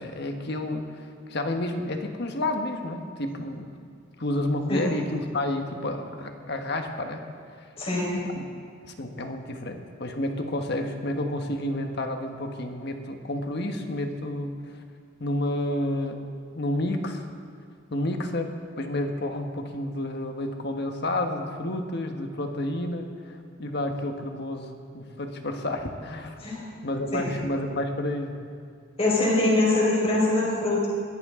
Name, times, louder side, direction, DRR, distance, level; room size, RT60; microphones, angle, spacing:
voice 1, 0.0-3.7 4.2-7.3 7.6-7.7 8.3-8.5 9.0-14.5 15.2-16.2 16.5-17.2 17.9-26.4 26.8-28.4, left 1 dB, 55° left, 4 dB, 1.3 m, -30 dB
voice 2, 7.8-8.1 26.4-26.6 27.1-27.2 29.0-30.9, left 2 dB, 30° left, -4 dB, 4.7 m, -23 dB
21.5 x 15.5 x 3.8 m, 2.2 s
head